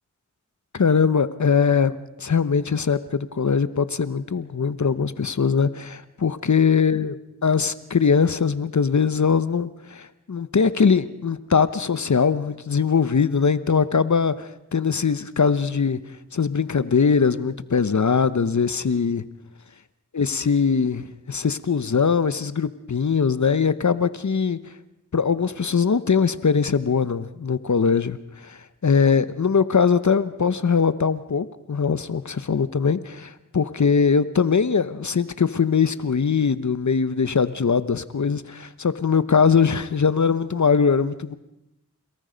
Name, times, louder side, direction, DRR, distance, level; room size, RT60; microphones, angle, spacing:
voice 1, 0.7-7.1 7.4-16.0 16.3-19.2 20.2-24.6 25.1-41.3, left 6 dB, 60° left, 14 dB, 0.9 m, -21 dB
29.5 x 18.5 x 5.2 m, 0.87 s
wide cardioid pair, 45°, 32 cm